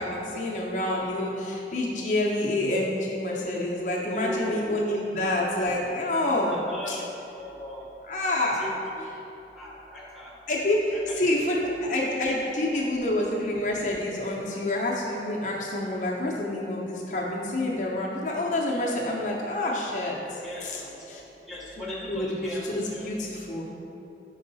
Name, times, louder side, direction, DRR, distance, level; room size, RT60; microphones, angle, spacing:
voice 1, 0.0-7.0 8.1-8.6 10.5-20.2 20.6-20.8 21.1-21.2 22.0-23.7, left 1 dB, 45° left, -3 dB, 0.6 m, -28 dB
voice 2, 4.1-4.8 6.4-7.1 7.3-7.9 8.5-9.0 9.6-10.3 10.9-11.2 12.0-12.2 12.7-12.9 20.4-21.2 21.5-23.1, left 1 dB, ahead, -6 dB, 0.8 m, -38 dB
5.4 x 4.6 x 4.0 m, 2.8 s
head